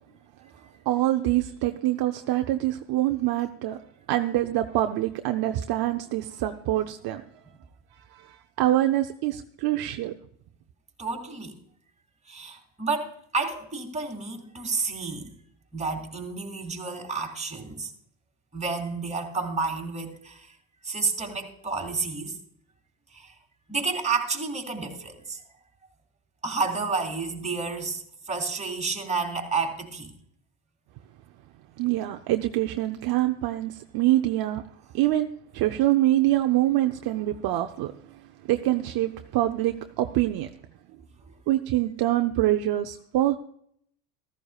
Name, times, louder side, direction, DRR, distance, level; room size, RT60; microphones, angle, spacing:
voice 1, 0.9-3.8 4.1-7.2 8.0-10.1 31.8-34.6 34.9-37.9 38.5-40.5 41.5-43.4, right 14 dB, 55° right, 5 dB, 0.8 m, -25 dB
voice 2, 11.0-11.5 12.3-15.3 15.7-17.9 18.5-20.5 20.8-22.4 23.1-23.3 23.7-25.4 26.4-30.1 41.3-41.4, right 4 dB, 15° right, 1 dB, 3.0 m, -30 dB
14.5 x 14.0 x 2.4 m, 0.68 s
supercardioid pair, 105°, 46 cm